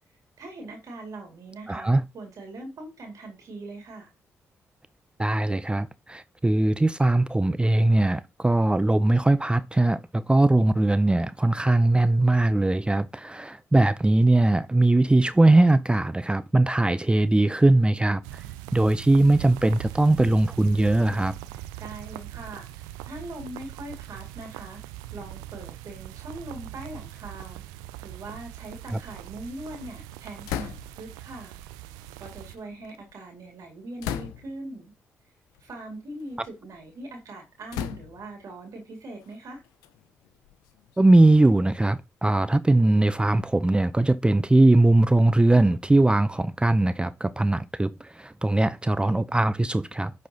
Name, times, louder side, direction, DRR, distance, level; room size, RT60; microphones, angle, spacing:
voice 1, 0.4-4.1 21.5-22.7 23.0-24.8 25.1-27.6 28.0-31.5 32.2-34.9 35.6-39.6, right 2 dB, 65° right, 2.1 m, -41 dB
voice 2, 1.7-2.0 5.2-18.4 18.7-21.4 28.9-29.0 41.0-50.1, right 2 dB, 15° right, 0.5 m, -20 dB
Huge Thunder, 18.2-32.5, right 14 dB, 90° right, 0.4 m, -41 dB
sound 1, 30.4-31.1 32.0-33.1 34.0-34.7 35.5-35.7 36.2-36.9 37.7-38.4 39.2-41.1, left 11 dB, 85° left, 0.5 m, -37 dB
10.0 x 4.1 x 2.8 m
hypercardioid pair, 40°, 6 cm